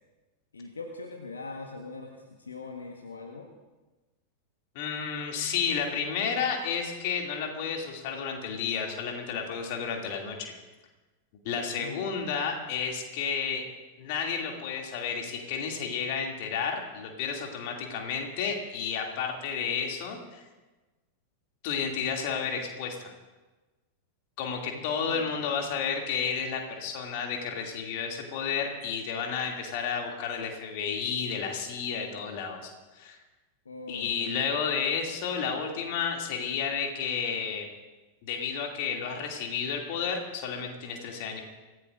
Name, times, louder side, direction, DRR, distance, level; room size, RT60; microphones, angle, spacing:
voice 1, 0.5-3.5 11.7-12.3 24.7-25.4 33.6-34.3, left 3 dB, 75° left, 3 dB, 1.4 m, -42 dB
voice 2, 4.7-10.5 11.4-13.6 14.0-20.4 21.6-23.1 24.4-33.2 33.9-37.7 38.2-41.4, left 6 dB, 50° left, 1 dB, 2.6 m, -31 dB
26.5 x 15.5 x 2.6 m, 1.2 s
figure-of-eight pair, 90°, 0 cm